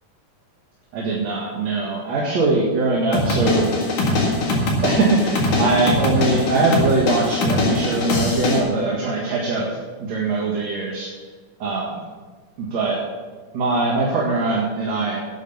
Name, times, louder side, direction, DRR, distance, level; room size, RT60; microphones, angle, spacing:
voice 1, 0.9-3.7 4.8-9.7 10.0-11.1 11.6-12.0 12.6-13.0 13.5-15.2, right 3 dB, 55° right, -5 dB, 3.0 m, -21 dB
sound 1, 3.1-8.6, left 2 dB, 65° left, 3.4 m, -22 dB
11.5 x 8.5 x 7.1 m, 1.4 s
omnidirectional pair, 4.0 m